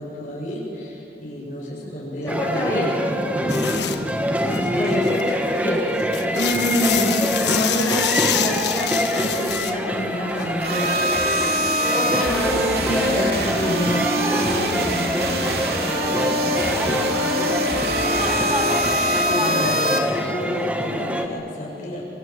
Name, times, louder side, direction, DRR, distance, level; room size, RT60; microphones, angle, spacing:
voice 1, 0.0-2.7 4.3-4.7 19.3-22.1, equal, 45° left, -3 dB, 7.5 m, -31 dB
voice 2, 2.2-2.9 3.4-3.8 4.7-11.0 11.6-15.7, equal, 15° left, -6 dB, 6.8 m, -26 dB
sound 1, 2.3-21.3, equal, 10° right, 1.4 m, -25 dB
sound 2, 3.5-4.0 4.4-5.4 5.8-9.7 10.3-10.5, left 10 dB, 85° left, 1.4 m, -26 dB
sound 3, 10.6-20.0, equal, 65° right, 3.2 m, -24 dB
25.5 x 25.5 x 8.0 m, 3.0 s
head